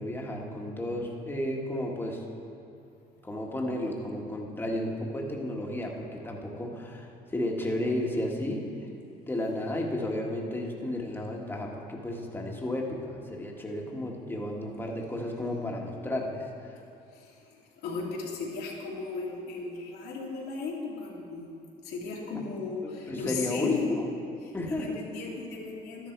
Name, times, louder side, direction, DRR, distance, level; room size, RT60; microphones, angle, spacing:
voice 1, 0.0-2.2 3.2-8.9 9.3-16.8 22.5-22.6 22.8-24.1 24.5-25.0, left 1 dB, 10° left, -1 dB, 1.7 m, -33 dB
voice 2, 17.1-21.5 21.8-23.9 24.6-26.1, left 4 dB, 85° left, -4 dB, 2.7 m, -36 dB
12.5 x 10.5 x 4.6 m, 2.6 s
cardioid pair, 110°, 17 cm